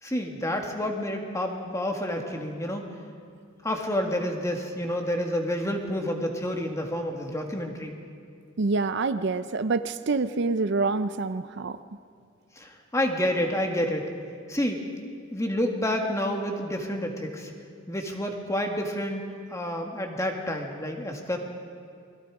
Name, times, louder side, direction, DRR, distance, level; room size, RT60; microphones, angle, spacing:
voice 1, 0.0-2.9 3.6-8.0 12.6-14.1 14.5-14.8 15.3-17.5 17.9-19.2 19.5-21.4, left 1 dB, 15° left, 2 dB, 2.0 m, -29 dB
voice 2, 8.6-11.8, right 3 dB, 60° right, 12 dB, 0.6 m, -26 dB
29.0 x 21.5 x 4.9 m, 2.3 s
head